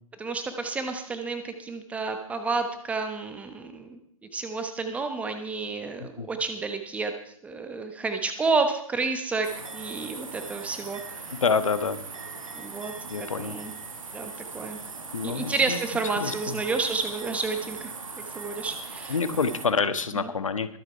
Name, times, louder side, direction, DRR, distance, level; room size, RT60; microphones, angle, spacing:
voice 1, 0.2-4.0 4.3-11.4 12.5-13.7 14.1-14.8 15.2-19.2 20.1-20.3, right 4 dB, 5° right, 7 dB, 1.0 m, -30 dB
sound 1, 9.4-19.7, right 4 dB, 70° right, 1.9 m, -40 dB
voice 2, 11.3-12.0 13.1-13.6 15.1-15.8 16.2-16.6 19.1-20.8, left 5 dB, 65° left, 10 dB, 1.4 m, -27 dB
22.5 x 7.9 x 4.7 m, 0.66 s
figure-of-eight pair, 125°, 18 cm